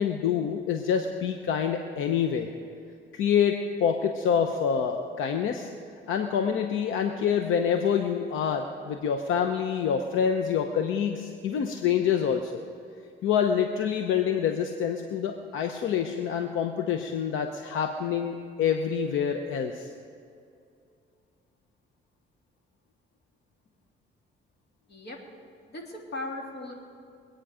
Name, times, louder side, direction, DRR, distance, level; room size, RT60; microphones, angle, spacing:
voice 1, 0.0-2.5 3.1-5.7 6.1-12.6 13.2-19.9, left 7 dB, 85° left, 5 dB, 0.9 m, -26 dB
voice 2, 24.9-25.2 25.7-26.7, left 2 dB, 55° left, 0 dB, 3.1 m, -37 dB
23.0 x 9.2 x 5.0 m, 2.5 s
cardioid pair, 90°, 20 cm